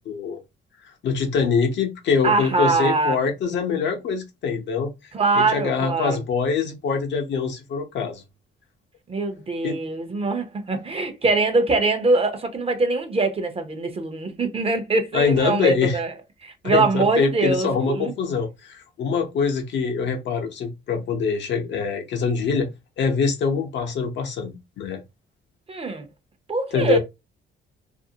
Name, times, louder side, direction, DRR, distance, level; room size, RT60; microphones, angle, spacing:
voice 1, 0.1-0.4 1.0-4.9 5.3-8.2 9.6-9.8 15.1-16.0 16.6-22.7 23.0-25.0 26.7-27.0, left 5 dB, 65° left, 0.7 m, -24 dB
voice 2, 2.2-3.2 5.1-6.2 9.1-16.1 16.4-18.1 25.7-26.1 26.5-27.0, right 3 dB, 30° right, 0.7 m, -23 dB
2.5 x 2.0 x 2.7 m
cardioid pair, 90°, 20 cm